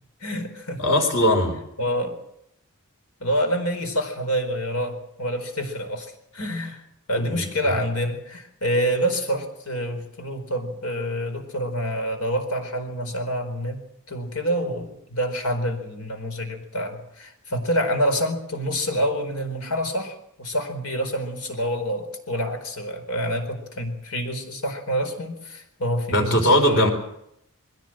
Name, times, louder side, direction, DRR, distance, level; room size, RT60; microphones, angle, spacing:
voice 1, 0.2-0.9 1.8-2.2 3.2-6.8 7.1-13.8 14.1-26.9, equal, 85° left, 6 dB, 4.5 m, -27 dB
voice 2, 0.8-1.6 7.1-7.7 26.1-26.9, left 1 dB, 55° left, 3 dB, 4.3 m, -20 dB
21.5 x 16.5 x 7.7 m, 0.76 s
head